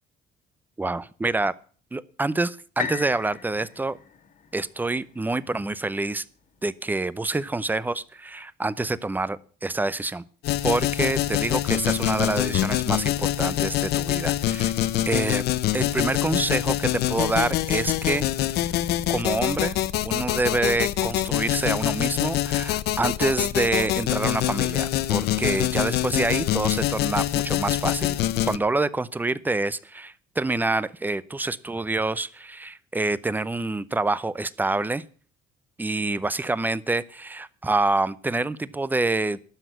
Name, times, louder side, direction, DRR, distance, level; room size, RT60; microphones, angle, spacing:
voice 1, 0.8-1.5 1.9-4.0 4.5-6.2 6.6-10.2 10.6-15.4 15.7-19.8 20.0-28.2 28.4-35.0 35.8-39.4, right 2 dB, 10° right, 18 dB, 0.6 m, -27 dB
sound 1, 2.8-6.7 7.3-7.4, left 7 dB, 50° left, 1.9 m, -38 dB
sound 2, 10.4-28.6, left 14 dB, 75° left, 0.7 m, -25 dB
12.5 x 6.2 x 9.1 m, 0.42 s
cardioid pair, 110°, 17 cm